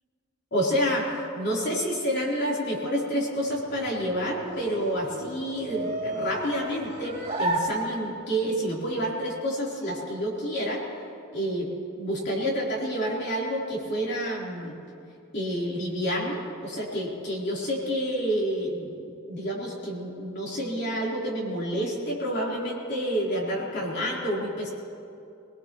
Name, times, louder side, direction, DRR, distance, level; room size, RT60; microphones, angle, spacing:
voice 1, 0.5-10.8 11.3-14.8 15.3-24.7, equal, 55° left, -4 dB, 3.7 m, -29 dB
sound 1, 3.4-8.4, right 1 dB, 30° right, 2.6 m, -33 dB
24.0 x 19.0 x 3.1 m, 2.6 s
head